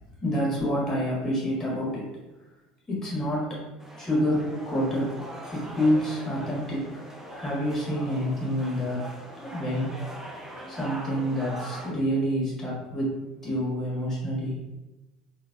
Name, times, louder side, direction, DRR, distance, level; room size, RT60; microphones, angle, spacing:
voice 1, 0.2-2.1 2.9-3.6 3.9-5.2 5.4-7.0 7.3-9.0 9.4-9.9 10.7-13.2 13.4-14.5, equal, 15° left, -6 dB, 1.5 m, -27 dB
sound 1, 3.8-11.9, equal, 10° right, 0.6 m, -42 dB
3.8 x 2.3 x 2.3 m, 1.0 s
figure-of-eight pair, 70°, 4 cm